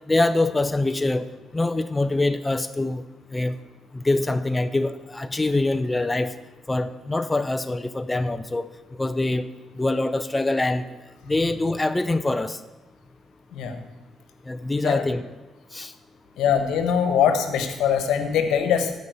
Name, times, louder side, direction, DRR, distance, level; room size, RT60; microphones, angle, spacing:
voice 1, 0.1-3.0 3.3-3.6 3.9-6.4 6.7-8.7 9.0-11.0 11.3-12.6 14.5-15.3 15.7-15.9, left 2 dB, 15° left, 12 dB, 0.5 m, -24 dB
voice 2, 16.4-18.9, left 8 dB, 85° left, 7 dB, 1.3 m, -22 dB
13.5 x 5.4 x 8.0 m, 1.1 s
cardioid pair, 90°, 0 cm